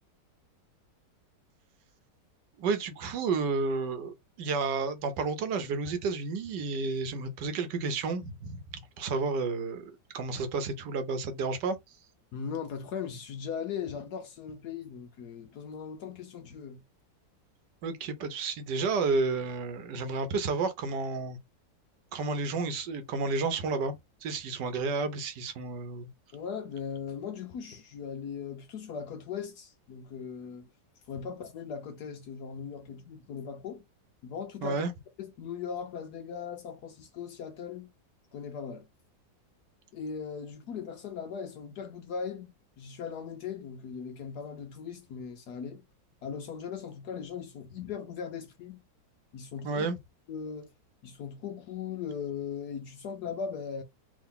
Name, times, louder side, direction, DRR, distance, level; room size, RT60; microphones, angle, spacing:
voice 1, 2.6-11.8 17.8-21.4 22.1-24.0 24.2-26.1 34.6-34.9 49.6-50.0, right 4 dB, 70° right, 1.4 m, -31 dB
voice 2, 12.3-16.8 26.3-30.7 31.1-33.8 34.2-34.8 35.2-37.9 38.3-38.9 39.9-42.5 42.8-45.8 46.2-48.8 49.3-49.9 50.3-50.7 51.0-53.8, left 7 dB, 65° left, 1.2 m, -39 dB
3.7 x 2.7 x 3.6 m
omnidirectional pair, 2.0 m